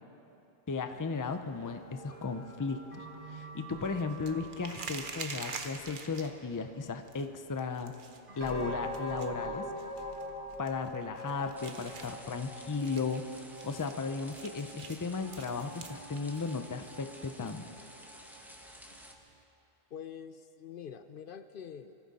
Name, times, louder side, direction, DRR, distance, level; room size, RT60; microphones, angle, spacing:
voice 1, 0.7-7.9 8.4-9.6 10.6-13.2 13.6-17.6, left 4 dB, 25° left, 8 dB, 0.5 m, -35 dB
sound 1, 0.8-6.5 8.3-19.1, equal, 80° right, 4.2 m, -45 dB
sound 2, 0.9-19.4, right 4 dB, 55° right, 1.0 m, -49 dB
sound 3, 11.6-19.1, equal, ahead, 1.1 m, -53 dB
voice 2, 19.9-21.9, left 8 dB, 65° left, 10 dB, 0.7 m, -45 dB
24.0 x 14.5 x 4.2 m, 2.8 s
omnidirectional pair, 1.0 m